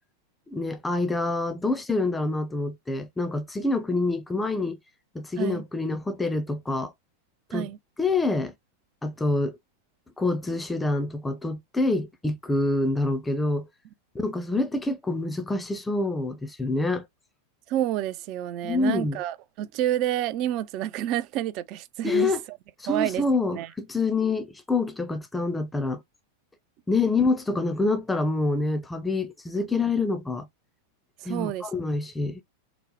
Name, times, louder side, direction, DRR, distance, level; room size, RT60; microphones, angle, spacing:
voice 1, 0.5-4.8 5.1-6.9 7.5-7.7 8.0-8.5 9.0-9.6 10.2-13.7 14.1-17.1 18.6-19.2 22.0-22.4 22.8-26.0 26.9-30.5 31.3-32.4, left 3 dB, 10° left, 0.5 m, -26 dB
voice 2, 17.7-22.6 22.8-23.2 23.5-23.7 31.2-31.7, right 12 dB, 40° right, 0.4 m, -29 dB
3.9 x 2.1 x 3.0 m
figure-of-eight pair, 90°, 0 cm